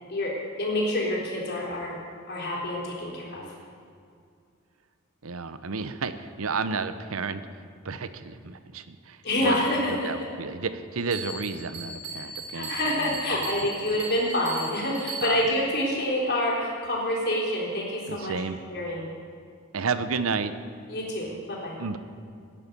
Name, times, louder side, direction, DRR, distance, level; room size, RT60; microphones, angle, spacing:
voice 1, 0.6-2.0 2.3-3.5 9.2-10.3 12.2-18.3 18.7-19.1 20.9-21.8, left 1 dB, 50° left, -3 dB, 3.9 m, -27 dB
voice 2, 5.2-7.4 7.8-9.6 10.0-12.7 13.0-13.4 15.2-15.4 18.1-18.6 19.7-20.5 21.8-22.0, right 4 dB, 70° right, 12 dB, 0.8 m, -31 dB
Bell, 11.1-15.6, right 3 dB, 50° right, 4.3 m, -38 dB
17.0 x 10.5 x 5.4 m, 2.4 s
head